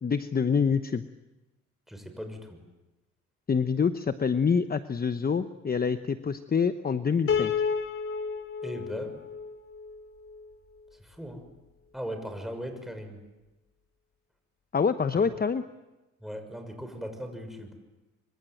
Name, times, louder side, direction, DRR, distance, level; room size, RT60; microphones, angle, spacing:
voice 1, 0.0-1.0 3.5-7.5 14.7-15.6, left 6 dB, 30° left, 10 dB, 1.0 m, -26 dB
voice 2, 1.9-2.6 8.6-9.2 11.0-11.4 11.9-13.2 15.1-15.2 16.2-17.7, equal, ahead, 6 dB, 6.2 m, -38 dB
Piano, 7.3-10.5, left 6 dB, 45° left, 2.6 m, -31 dB
26.0 x 25.0 x 9.2 m, 1.1 s
cardioid pair, 90°, 30 cm